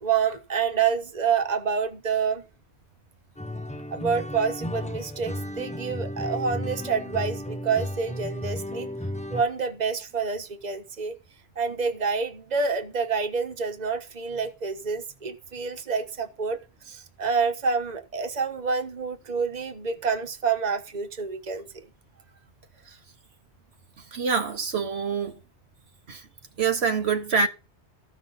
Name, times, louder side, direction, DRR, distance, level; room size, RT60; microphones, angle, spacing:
voice 1, 0.0-2.4 3.9-8.9 9.3-11.2 11.6-21.7, right 5 dB, 40° right, 1.3 m, -28 dB
sound 1, 3.4-9.4, left 1 dB, 10° left, 0.5 m, -34 dB
voice 2, 24.1-25.4 26.1-26.2 26.6-27.5, right 5 dB, 70° right, 1.3 m, -25 dB
14.0 x 6.1 x 5.6 m
omnidirectional pair, 1.1 m